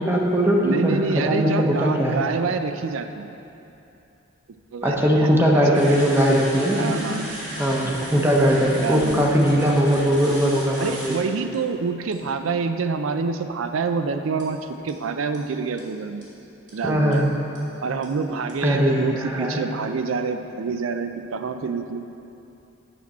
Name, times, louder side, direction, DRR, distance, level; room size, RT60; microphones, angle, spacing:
voice 1, 0.0-2.2 4.8-7.0 7.6-11.2 16.8-17.3 18.6-19.6, equal, 10° right, -2 dB, 0.8 m, -20 dB
voice 2, 0.6-3.3 4.7-6.0 6.8-7.9 8.8-9.4 10.8-16.2 16.7-17.3 17.8-22.0, right 4 dB, 80° right, 8 dB, 0.4 m, -27 dB
sound 1, 5.7-11.2 11.5-11.6 12.1-12.3 14.4-14.5 14.9-15.0 15.3-15.4 15.8-15.9 16.2-16.3 16.7-16.8 17.1-17.2 17.6-17.7 18.0-18.1 18.5-18.6, right 1 dB, 40° right, 1.8 m, -36 dB
8.3 x 6.0 x 4.2 m, 2.8 s
head